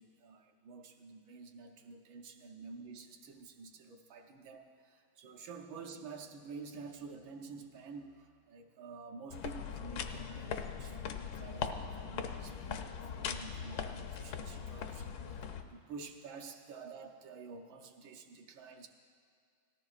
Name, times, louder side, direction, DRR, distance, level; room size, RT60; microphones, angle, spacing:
voice 1, 0.0-18.9, right 4 dB, 70° right, 3 dB, 1.5 m, -50 dB
sound 1, 9.3-15.6, left 6 dB, 75° left, 0.9 m, -40 dB
17.5 x 14.0 x 2.4 m, 2.2 s
omnidirectional pair, 2.4 m